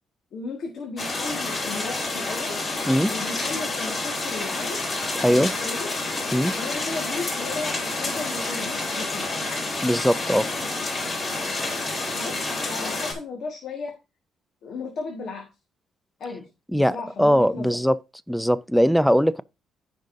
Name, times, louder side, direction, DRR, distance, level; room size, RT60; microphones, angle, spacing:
voice 1, 0.3-2.6 3.1-4.8 5.3-5.9 6.5-9.3 12.1-14.0 14.6-15.5 16.2-17.8, left 4 dB, 65° left, 1.7 m, -35 dB
sound 1, 1.0-13.1, left 2 dB, 45° left, 3.7 m, -29 dB
voice 2, 9.8-10.5 16.7-18.0 18.3-19.4, equal, ahead, 0.5 m, -20 dB
14.5 x 5.2 x 2.7 m
cardioid pair, 90°, 0 cm